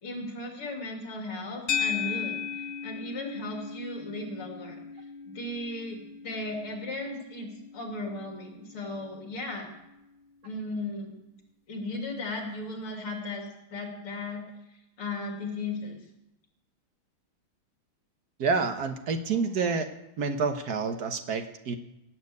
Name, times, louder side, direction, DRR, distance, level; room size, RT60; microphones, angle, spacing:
voice 1, 0.0-2.4 2.8-4.8 5.2-9.7 10.4-11.2 11.7-14.5 15.0-16.0, left 2 dB, 80° left, 1 dB, 3.7 m, -36 dB
sound 1, 1.7-10.1, left 7 dB, 50° left, 0.8 m, -37 dB
voice 2, 18.4-19.9 20.2-21.8, right 4 dB, 55° right, 7 dB, 1.3 m, -28 dB
17.5 x 7.5 x 8.3 m, 0.89 s
omnidirectional pair, 2.4 m